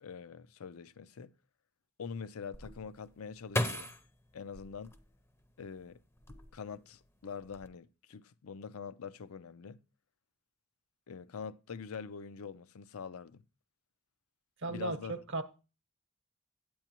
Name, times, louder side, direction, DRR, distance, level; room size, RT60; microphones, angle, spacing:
voice 1, 0.0-1.3 2.0-3.9 4.3-4.9 5.6-6.0 6.5-9.8 11.1-13.4 14.7-15.2, left 6 dB, 75° left, 0.5 m, -44 dB
sound 1, 2.5-5.6 6.1-6.9 7.2-7.7, left 1 dB, 10° left, 0.6 m, -37 dB
voice 2, 14.6-15.4, right 3 dB, 60° right, 0.9 m, -36 dB
8.9 x 8.6 x 2.9 m
head